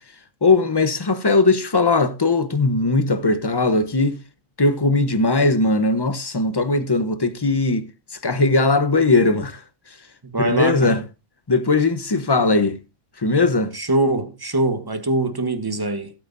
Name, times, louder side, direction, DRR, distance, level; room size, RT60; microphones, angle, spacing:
voice 1, 0.4-4.2 4.6-7.9 8.2-9.6 10.4-11.0 11.5-12.8 13.2-13.7, left 3 dB, 20° left, 0.8 m, -19 dB
voice 2, 10.3-11.0 13.7-16.1, right 2 dB, 20° right, 1.1 m, -23 dB
17.0 x 8.8 x 2.6 m
omnidirectional pair, 1.4 m